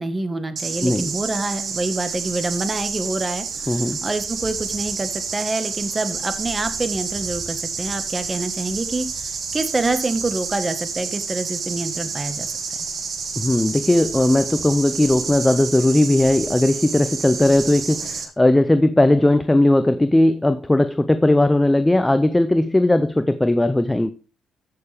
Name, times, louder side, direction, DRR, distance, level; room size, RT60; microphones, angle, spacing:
voice 1, 0.0-9.1 9.5-12.5, right 2 dB, 20° right, 9 dB, 1.6 m, -26 dB
sound 1, 0.6-18.2, right 5 dB, 55° right, 2.3 m, -29 dB
voice 2, 0.8-1.1 3.7-4.0 13.4-24.1, left 1 dB, 10° left, 11 dB, 0.6 m, -18 dB
14.5 x 6.7 x 3.5 m, 0.35 s
cardioid pair, 90°, 0 cm